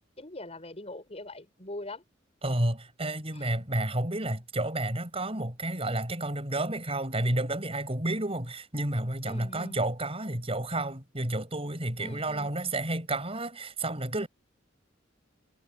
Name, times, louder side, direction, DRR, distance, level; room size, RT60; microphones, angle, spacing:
voice 1, 0.2-2.0 3.3-3.5 9.2-9.8 12.0-12.5, left 1 dB, 35° left, 6.6 m, -42 dB
voice 2, 2.4-14.3, right 1 dB, 30° right, 7.7 m, -31 dB
head